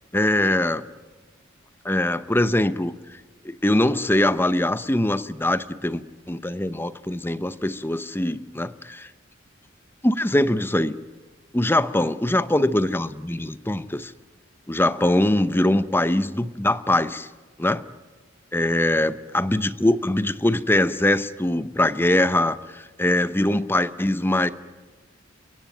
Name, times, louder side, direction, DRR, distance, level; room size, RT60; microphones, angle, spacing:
voice 1, 0.1-0.8 1.8-2.9 3.4-6.0 6.3-9.1 10.0-11.0 11.5-14.1 14.7-17.3 17.6-17.8 18.5-24.5, left 1 dB, 10° left, 14 dB, 0.7 m, -22 dB
29.5 x 16.5 x 9.1 m, 1.3 s
head